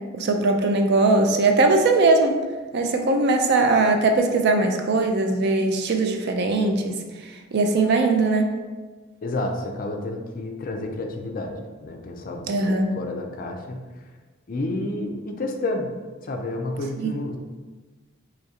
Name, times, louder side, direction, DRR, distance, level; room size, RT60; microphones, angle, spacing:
voice 1, 0.1-2.4 2.7-6.9 7.5-8.5 12.5-12.9 17.0-17.1, right 3 dB, 55° right, 4 dB, 0.4 m, -20 dB
voice 2, 9.2-11.5 11.8-13.8 14.5-15.9 16.2-17.4, left 2 dB, 45° left, 3 dB, 0.4 m, -30 dB
3.7 x 3.0 x 2.8 m, 1.3 s
head